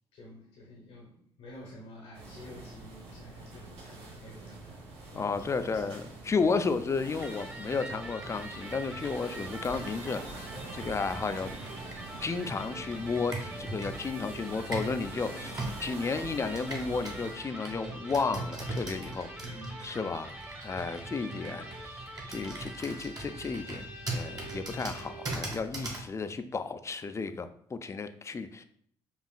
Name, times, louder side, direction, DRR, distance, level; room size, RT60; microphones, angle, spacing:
voice 1, 0.1-6.0 14.4-14.7 15.1-15.6 19.4-20.4, left 1 dB, 75° left, -3 dB, 0.9 m, -50 dB
sound 1, 2.1-17.3, right 2 dB, 80° right, 1.1 m, -45 dB
voice 2, 5.1-11.5 12.2-15.5 15.8-19.3 19.8-20.3 20.6-28.6, left 4 dB, 25° left, 10 dB, 0.4 m, -33 dB
Computer keyboard, 7.1-15.0 15.6-26.1, right 2 dB, 35° right, 1.3 m, -41 dB
Electric guitar, 7.2-25.5, right 1 dB, 15° right, 1.0 m, -45 dB
5.4 x 2.4 x 2.3 m, 0.63 s
supercardioid pair, 55°, 11 cm